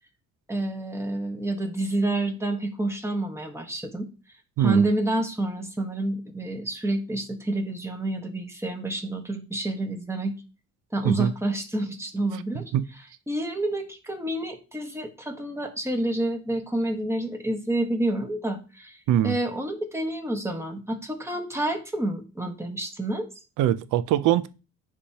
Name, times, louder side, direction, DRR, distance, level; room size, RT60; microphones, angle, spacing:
voice 1, 0.5-4.1 4.6-10.3 10.9-12.7 13.3-19.0 19.2-23.3, right 1 dB, 10° right, 1.3 m, -28 dB
voice 2, 23.6-24.5, right 12 dB, 85° right, 0.5 m, -22 dB
9.7 x 3.4 x 2.9 m
cardioid pair, 90°, 30 cm